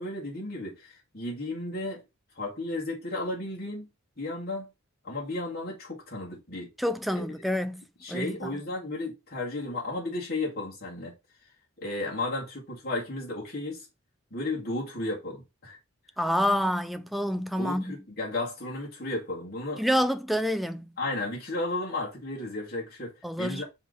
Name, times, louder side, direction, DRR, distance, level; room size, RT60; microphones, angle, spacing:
voice 1, 0.0-2.0 2.4-3.9 4.2-4.7 5.0-6.7 7.2-7.3 8.0-11.1 11.8-13.9 14.3-15.8 17.6-19.8 21.0-23.6, left 2 dB, 50° left, 2.4 m, -34 dB
voice 2, 6.8-8.6 16.2-18.0 19.8-20.9 23.2-23.6, equal, ahead, 0.4 m, -28 dB
5.5 x 3.4 x 5.2 m
head